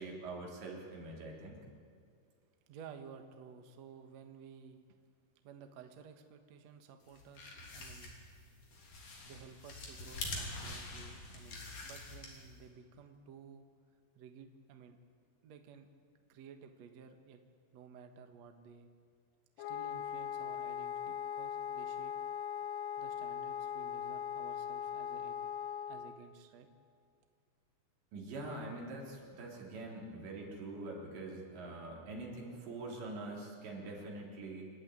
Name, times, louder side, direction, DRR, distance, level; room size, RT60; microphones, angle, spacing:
voice 1, 0.0-1.6 28.1-34.7, right 2 dB, 80° right, -2 dB, 5.8 m, -44 dB
voice 2, 2.7-5.0 5.4-8.1 9.2-13.7 14.2-15.0 15.4-15.9 16.3-17.4 17.7-18.9 19.7-22.1 23.0-25.5 25.9-26.7, right 6 dB, 60° right, 5 dB, 1.8 m, -54 dB
sound 1, 7.1-12.6, left 2 dB, 50° left, 4.5 m, -45 dB
Wind instrument woodwind instrument, 19.6-26.2, left 9 dB, 80° left, 2.7 m, -40 dB
27.5 x 12.5 x 9.5 m, 2.2 s
omnidirectional pair, 5.0 m